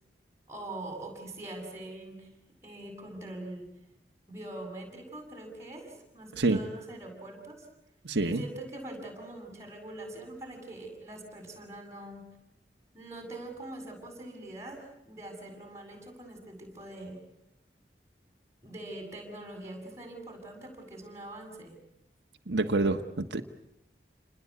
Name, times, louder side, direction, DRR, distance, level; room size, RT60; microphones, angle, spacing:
voice 1, 0.5-2.3 2.6-3.7 4.3-7.7 8.2-12.2 12.9-17.2 18.6-21.7, right 1 dB, 15° right, 2 dB, 7.2 m, -43 dB
voice 2, 8.0-8.4 22.5-23.4, right 2 dB, 80° right, 5 dB, 1.3 m, -27 dB
29.0 x 20.5 x 8.5 m, 0.86 s
head